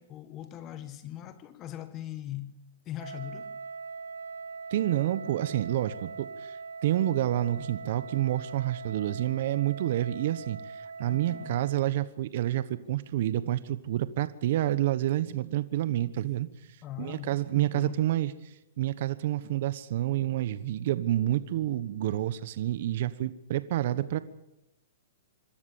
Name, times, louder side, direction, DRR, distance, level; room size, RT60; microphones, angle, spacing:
voice 1, 0.0-2.6 2.9-3.6 11.0-11.6 16.8-18.1, left 12 dB, 30° left, 1.6 m, -41 dB
Wind instrument woodwind instrument, 3.0-11.9, right 4 dB, 85° right, 1.4 m, -42 dB
voice 2, 4.7-16.5 17.0-24.2, right 13 dB, 55° right, 1.2 m, -29 dB
26.0 x 13.5 x 8.5 m
hypercardioid pair, 135°, 0 cm